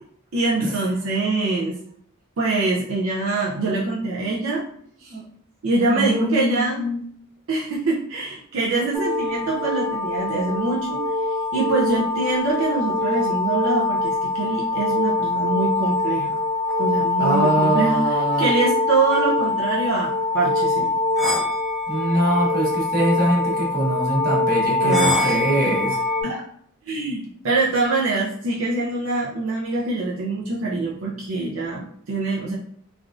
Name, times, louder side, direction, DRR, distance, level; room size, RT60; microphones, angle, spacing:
voice 1, 0.3-1.8 2.4-4.6 5.0-5.1 5.6-6.8 7.5-11.0 11.5-16.4 16.8-20.9 24.8-25.4 25.6-25.7 26.2-26.4 26.9-32.6, right 3 dB, 70° right, -4 dB, 0.5 m, -24 dB
voice 2, 5.9-7.0 17.2-18.5 21.9-26.0, right 1 dB, 40° right, -4 dB, 1.0 m, -23 dB
sound 1, 8.9-26.2, left 2 dB, 5° right, 0.3 m, -23 dB
3.3 x 2.4 x 2.4 m, 0.64 s
head